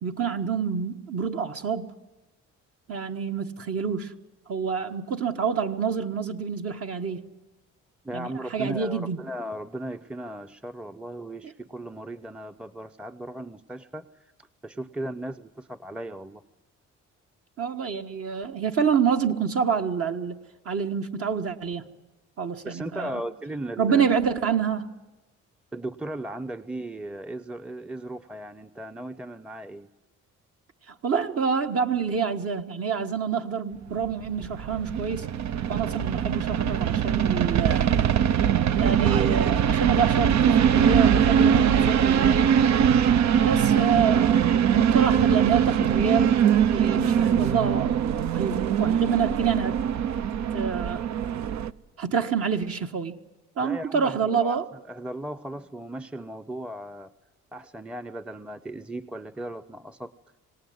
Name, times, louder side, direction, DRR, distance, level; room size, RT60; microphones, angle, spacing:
voice 1, 0.0-1.9 2.9-4.1 4.5-7.2 8.1-9.2 17.6-20.4 20.7-21.9 22.4-23.2 23.8-24.9 30.9-35.3 35.7-37.9 38.8-42.6 43.4-44.4 44.7-46.4 46.7-48.1 48.3-49.8 50.5-51.0 52.0-53.2 53.6-54.7, right 6 dB, 50° right, 1.6 m, -27 dB
voice 2, 8.0-14.0 14.6-16.4 22.6-24.0 25.7-29.9 53.6-54.6 54.9-57.1 57.5-60.1, right 1 dB, 5° right, 0.8 m, -36 dB
sound 1, 34.0-51.7, right 8 dB, 65° right, 0.9 m, -22 dB
26.5 x 18.5 x 9.5 m
cardioid pair, 90°, 30 cm